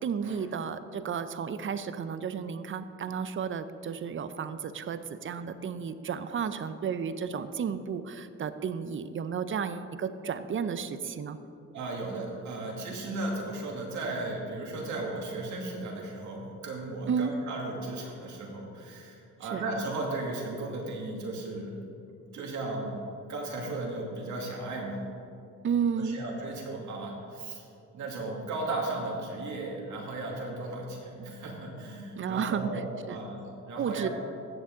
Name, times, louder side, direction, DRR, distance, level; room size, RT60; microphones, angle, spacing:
voice 1, 0.0-11.4 17.1-17.3 19.5-19.6 25.6-26.2 32.2-32.7 33.1-33.2 33.8-34.1, right 7 dB, 40° right, 12 dB, 0.6 m, -32 dB
voice 2, 11.7-21.8 22.3-23.0 23.3-25.0 26.0-27.6 27.9-34.1, right 2 dB, 70° right, -1 dB, 2.4 m, -36 dB
15.5 x 7.1 x 3.8 m, 2.6 s
cardioid pair, 90°, 30 cm